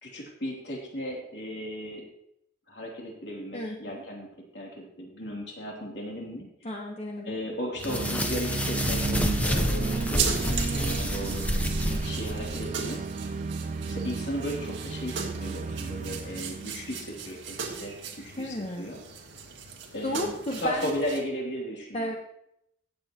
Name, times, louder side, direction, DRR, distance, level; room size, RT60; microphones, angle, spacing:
voice 1, 0.0-2.1 2.7-4.3 4.5-6.5 7.2-11.5 12.0-13.0 13.9-19.0 19.9-22.1, equal, 65° left, -2 dB, 2.9 m, -36 dB
voice 2, 3.5-4.0 6.6-7.4 11.9-12.2 18.4-18.9 20.0-20.9 21.9-22.1, left 1 dB, 30° left, 0 dB, 1.0 m, -33 dB
sound 1, 7.8-12.6, equal, 10° left, 0.8 m, -29 dB
sound 2, 7.8-17.8, right 4 dB, 40° right, 0.3 m, -34 dB
sound 3, 10.2-21.2, right 6 dB, 75° right, 1.6 m, -37 dB
17.5 x 7.9 x 3.0 m, 0.76 s
head